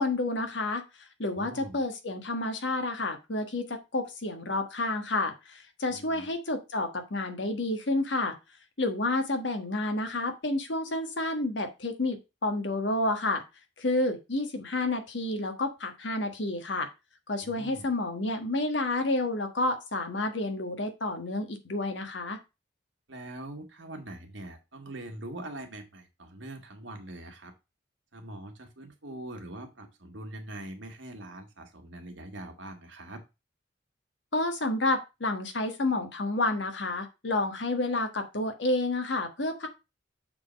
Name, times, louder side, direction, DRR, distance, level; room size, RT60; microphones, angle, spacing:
voice 1, 0.0-8.4 8.8-13.4 13.8-16.9 17.3-22.4 34.3-39.7, left 2 dB, 70° left, 6 dB, 1.4 m, -30 dB
voice 2, 1.4-1.8 5.9-6.3 17.4-17.9 23.1-27.5 28.1-33.2, right 1 dB, 75° right, 4 dB, 1.6 m, -43 dB
6.7 x 3.8 x 5.0 m, 0.26 s
head